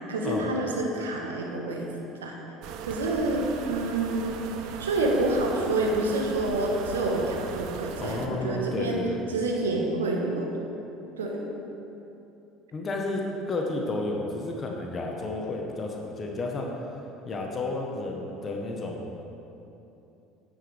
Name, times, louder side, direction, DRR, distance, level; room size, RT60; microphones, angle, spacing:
voice 1, 0.1-1.9 2.2-2.4 2.9-4.3 4.8-9.0 9.3-10.5 11.2-11.4, right 2 dB, 85° right, 0 dB, 1.1 m, -28 dB
sound 1, 2.6-8.3, right 6 dB, 65° right, 0.6 m, -38 dB
voice 2, 8.0-9.2 12.7-16.7 17.2-19.1, left 2 dB, 35° left, 1 dB, 1.1 m, -31 dB
9.4 x 8.6 x 3.5 m, 2.9 s
hypercardioid pair, 70°, 0 cm